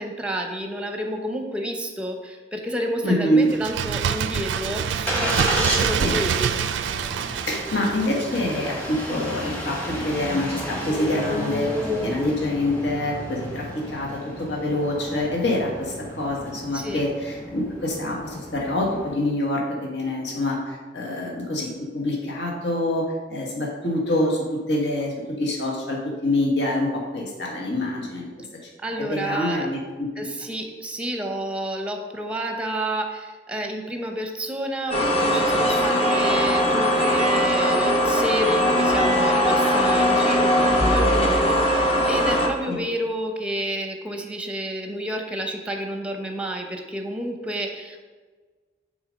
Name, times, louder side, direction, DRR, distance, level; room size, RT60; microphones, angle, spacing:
voice 1, 0.0-6.5 16.7-17.0 28.8-29.7 30.2-48.0, right 1 dB, 5° right, 3 dB, 0.7 m, -30 dB
voice 2, 3.0-3.5 6.0-6.1 7.5-28.3 28.9-30.1 42.7-42.8, left 1 dB, 70° left, -2 dB, 1.4 m, -26 dB
Bird, 3.5-9.0 9.3-9.4, right 7 dB, 85° right, 0.3 m, -26 dB
Engine starting, 3.9-19.1, equal, 10° left, 1.1 m, -32 dB
sound 1, 34.9-42.5, equal, 35° left, 0.9 m, -20 dB
6.9 x 4.0 x 5.1 m, 1.4 s
head